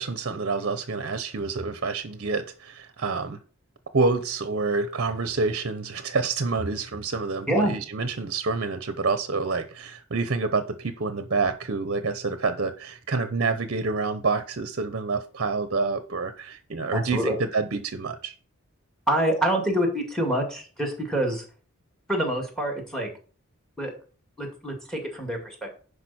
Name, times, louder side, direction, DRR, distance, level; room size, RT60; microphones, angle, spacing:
voice 1, 0.0-3.4 3.9-18.3, right 4 dB, 50° right, 10 dB, 0.8 m, -27 dB
voice 2, 16.9-17.4 19.1-21.4 22.1-23.1 23.8-23.9 24.4-25.8, right 1 dB, 5° left, 3 dB, 2.3 m, -26 dB
10.5 x 5.1 x 4.3 m, 0.40 s
head